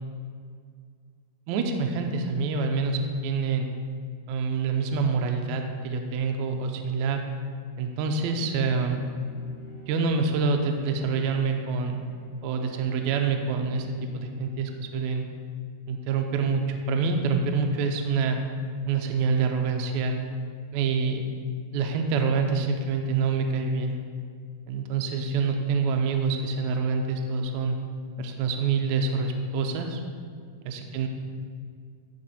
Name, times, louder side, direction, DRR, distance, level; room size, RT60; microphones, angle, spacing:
voice 1, 1.5-3.7 4.3-7.2 7.8-9.0 9.9-12.0 12.4-13.9 14.1-15.3 15.9-18.4 18.9-20.1 20.7-21.2 21.7-24.0 24.7-27.8 28.2-30.0 30.6-31.1, right 4 dB, 75° right, 4 dB, 1.8 m, -26 dB
Bowed string instrument, 8.2-15.2, equal, 20° left, 2.2 m, -49 dB
11.5 x 4.3 x 4.2 m, 2.1 s
omnidirectional pair, 3.6 m